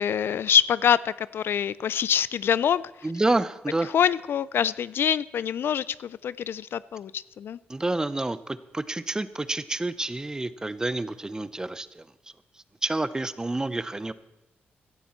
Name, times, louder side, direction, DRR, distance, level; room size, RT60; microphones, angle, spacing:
voice 1, 0.0-2.8 3.9-7.6, left 8 dB, 65° left, 19 dB, 0.4 m, -25 dB
voice 2, 3.0-3.9 7.7-12.0 12.8-14.1, right 2 dB, 15° right, 15 dB, 0.7 m, -28 dB
17.0 x 12.5 x 4.4 m, 0.99 s
cardioid pair, 95°, 4 cm